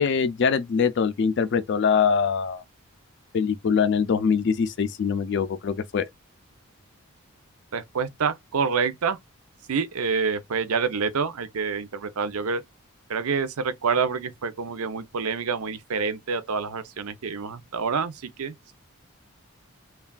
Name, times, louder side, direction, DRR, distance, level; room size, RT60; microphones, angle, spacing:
voice 1, 0.0-2.6 3.3-6.1, left 6 dB, 55° left, 0.3 m, -23 dB
voice 2, 7.7-9.2 9.7-12.6 13.1-18.5, right 5 dB, 80° right, 0.6 m, -27 dB
3.3 x 2.3 x 2.2 m
head